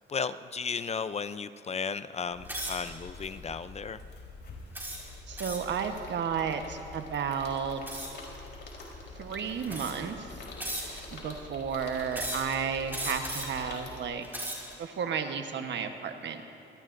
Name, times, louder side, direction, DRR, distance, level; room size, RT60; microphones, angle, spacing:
voice 1, 0.0-4.0, left 6 dB, 35° left, 13 dB, 0.5 m, -34 dB
sound 1, 2.3-14.0, left 3 dB, 60° left, 3.9 m, -46 dB
sound 2, 2.5-2.9 3.6-3.8 4.7-5.8 7.9-8.3 9.1-9.2 9.7-10.1 10.6-11.2 12.1-12.6 12.9-13.6 14.1-14.7, right 1 dB, 10° right, 4.5 m, -37 dB
voice 2, 5.3-8.1 9.2-10.4 10.8-14.4 14.8-16.4, right 7 dB, 65° right, 6 dB, 1.2 m, -33 dB
25.5 x 18.5 x 2.6 m, 2.9 s
cardioid pair, 90°, 20 cm